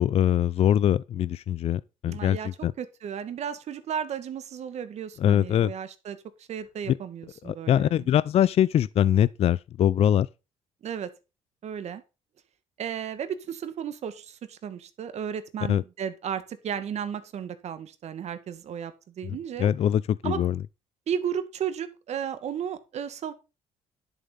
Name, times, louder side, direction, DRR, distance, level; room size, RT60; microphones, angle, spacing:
voice 1, 0.0-2.7 5.2-5.7 6.9-7.0 7.4-10.3 15.7-15.8 19.3-20.6, left 10 dB, 55° left, 0.4 m, -23 dB
voice 2, 2.0-2.5 2.8-8.1 10.8-11.1 11.6-12.0 12.8-19.7 20.2-20.5 21.1-23.3, right 8 dB, 60° right, 2.0 m, -34 dB
11.0 x 7.0 x 5.5 m
cardioid pair, 105°, 13 cm